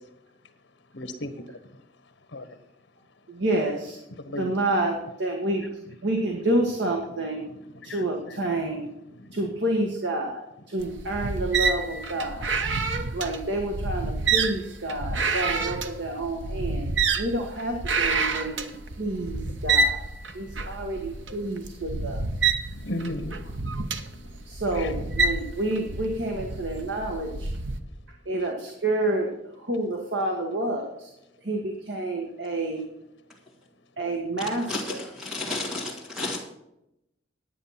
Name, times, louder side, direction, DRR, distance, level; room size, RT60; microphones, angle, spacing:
voice 1, 0.9-1.4 2.3-2.5 4.2-4.5 7.8-8.0 22.8-23.9 24.8-24.9, left 1 dB, 80° left, 8 dB, 1.2 m, -34 dB
voice 2, 3.3-4.0 4.4-5.6 6.0-7.5 7.8-8.9 9.3-12.5 13.1-18.6 19.0-20.0 20.3-22.3 24.5-27.5 28.3-29.3 29.6-31.1 31.4-32.8 34.0-35.1, right 1 dB, 70° right, 1 dB, 1.7 m, -29 dB
sound 1, 10.8-27.8, right 4 dB, 85° right, 1.0 m, -28 dB
voice 3, 34.7-36.4, left 2 dB, 5° right, -3 dB, 2.1 m, -32 dB
10.0 x 9.4 x 5.8 m, 0.84 s
head